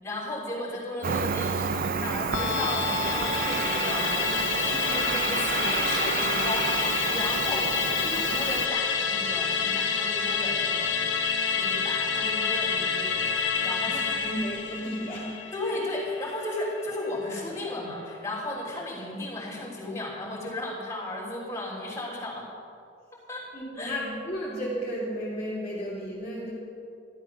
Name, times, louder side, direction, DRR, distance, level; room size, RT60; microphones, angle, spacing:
voice 1, 0.0-10.9 11.5-14.3 15.5-22.5 23.3-23.5 23.7-23.9, left 1 dB, 15° left, -6 dB, 3.3 m, -35 dB
Cricket, 1.0-8.7, right 6 dB, 45° right, 0.5 m, -30 dB
Musical instrument, 2.3-17.0 17.3-17.4, left 6 dB, 75° left, 1.1 m, -28 dB
voice 2, 13.9-15.3 23.5-26.5, equal, 35° left, -7 dB, 2.8 m, -33 dB
13.0 x 12.0 x 5.9 m, 2.7 s
head